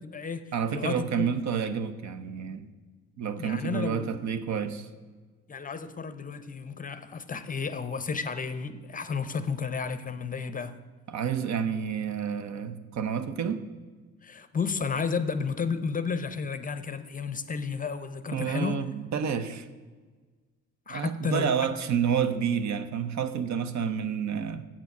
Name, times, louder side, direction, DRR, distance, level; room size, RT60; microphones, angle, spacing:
voice 1, 0.0-0.4 0.7-1.3 3.4-4.1 5.5-10.8 14.2-18.8 20.9-21.5, left 5 dB, 30° left, 12 dB, 0.6 m, -32 dB
voice 2, 0.5-2.7 3.2-4.9 11.1-13.7 18.3-19.7 20.9-24.7, right 7 dB, 65° right, 10 dB, 0.7 m, -29 dB
7.4 x 6.8 x 5.9 m, 1.4 s
cardioid pair, 90°, 30 cm